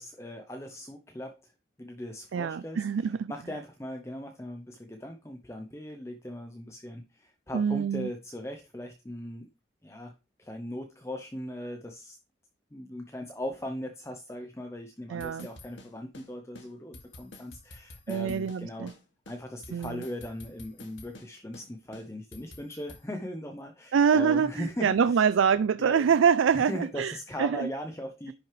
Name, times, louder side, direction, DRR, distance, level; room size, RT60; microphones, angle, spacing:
voice 1, 0.0-1.5 1.8-9.5 9.8-10.1 10.4-12.2 12.7-18.9 19.3-25.2 25.8-26.1 26.5-28.3, left 1 dB, 15° left, 0.8 m, -39 dB
voice 2, 2.3-3.3 7.5-8.1 15.1-15.5 18.1-18.9 19.7-20.0 23.9-27.7, right 7 dB, 90° right, 0.4 m, -25 dB
sound 1, 15.2-16.3 16.5-16.7 16.9-18.6 18.9-19.0 19.3-21.3 21.5-21.7 21.9-23.0, left 2 dB, 80° left, 2.2 m, -48 dB
10.5 x 6.2 x 3.2 m
head